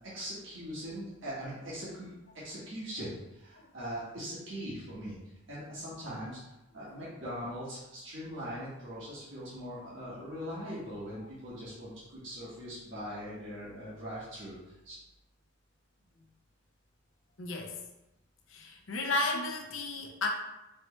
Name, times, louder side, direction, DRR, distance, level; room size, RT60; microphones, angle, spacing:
voice 1, 0.1-5.2 5.5-6.4 6.7-15.0, equal, 60° right, -9 dB, 1.3 m, -41 dB
voice 2, 17.4-17.8 18.5-20.3, left 2 dB, 70° left, 2 dB, 0.7 m, -33 dB
4.4 x 3.1 x 3.0 m, 0.94 s
head